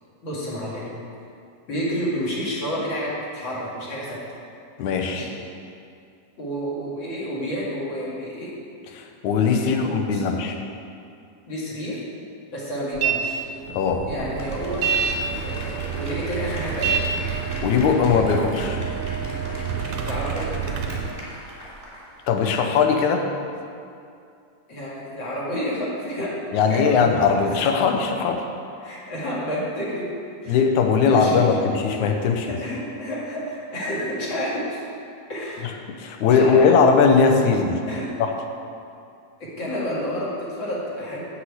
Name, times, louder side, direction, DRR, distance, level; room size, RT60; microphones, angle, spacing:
voice 1, 0.2-0.9 1.7-4.2 5.1-5.4 6.4-8.5 9.5-10.3 11.5-12.0 12.5-13.4 14.1-14.9 15.4-16.9 20.0-20.6 24.7-26.3 26.7-27.0 28.8-30.1 30.4-30.6 31.1-31.5 32.6-34.8 35.3-35.7 36.3-36.6 37.9-38.1 39.4-41.2, equal, 45° left, -6 dB, 2.6 m, -30 dB
voice 2, 4.8-5.3 8.9-10.6 13.7-14.0 17.4-18.8 22.3-23.3 26.5-28.4 30.5-32.6 36.0-37.8 38.2-38.3, left 5 dB, 80° left, 4 dB, 2.2 m, -20 dB
sound 1, 13.0-13.2 13.5-21.1, right 6 dB, 80° right, 2.2 m, -27 dB
Applause, 14.1-22.3 22.7-22.8, left 1 dB, ahead, 2.0 m, -40 dB
8.1 x 6.1 x 8.0 m, 2.5 s
omnidirectional pair, 3.4 m